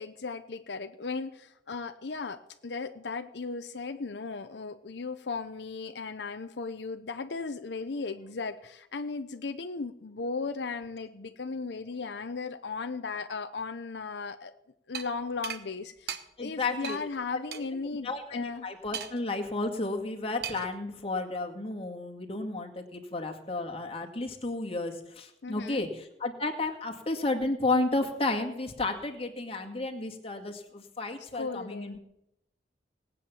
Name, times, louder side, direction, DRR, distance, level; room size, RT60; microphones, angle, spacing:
voice 1, 0.0-14.5 14.9-18.7 25.4-25.8 31.3-32.0, left 4 dB, 75° left, 9 dB, 0.7 m, -36 dB
sound 1, 14.9-15.1 15.4-15.6 16.1-16.2 16.8-17.0 17.5-17.6 18.9-19.3 20.4-20.7, right 8 dB, 60° right, 1.1 m, -36 dB
voice 2, 16.4-17.0 17.3-32.0, left 2 dB, 35° left, 3 dB, 2.0 m, -32 dB
19.0 x 8.6 x 7.2 m, 0.83 s
head